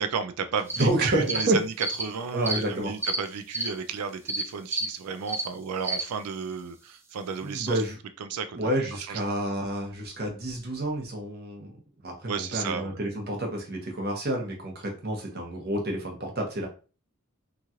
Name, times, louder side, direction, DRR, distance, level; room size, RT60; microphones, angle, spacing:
voice 1, 0.0-7.8 8.2-8.6 9.1-9.3 12.3-13.0, right 6 dB, 85° right, 9 dB, 0.4 m, -33 dB
sound 1, 0.7-0.8 1.3-1.4 1.8-2.0 2.4-2.6 3.0-3.2 3.5-3.7 4.3-4.4 4.7-4.9 5.3-5.5 5.8-6.0, right 2 dB, 10° right, 0.4 m, -29 dB
voice 2, 0.8-1.6 2.3-2.9 7.4-8.0 8.6-11.7 12.0-16.7, right 1 dB, 45° right, 1 dB, 0.9 m, -29 dB
3.0 x 2.4 x 2.7 m, 0.34 s
head